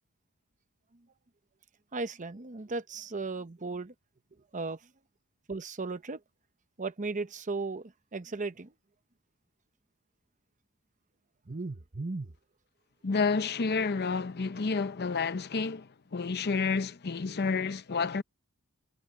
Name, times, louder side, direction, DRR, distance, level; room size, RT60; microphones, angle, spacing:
voice 1, 1.9-3.9 4.5-4.9 5.5-6.2 6.8-8.7 11.5-12.3, right 3 dB, 35° right, 0.9 m, -36 dB
voice 2, 13.0-18.2, left 4 dB, 50° left, 0.7 m, -30 dB
head